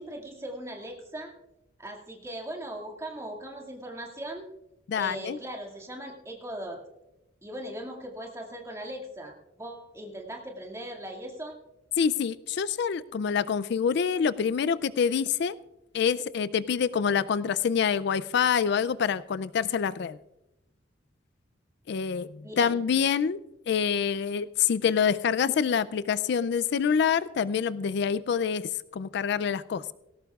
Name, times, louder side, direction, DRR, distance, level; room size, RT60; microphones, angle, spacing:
voice 1, 0.0-1.3 1.8-4.5 5.0-6.8 7.4-11.6 22.4-22.8, right 1 dB, 15° right, 0 dB, 2.1 m, -39 dB
voice 2, 4.9-5.4 12.0-15.6 15.9-20.2 21.9-23.4 23.7-29.8, left 7 dB, 60° left, 16 dB, 0.4 m, -26 dB
18.5 x 17.0 x 2.4 m, 0.93 s
head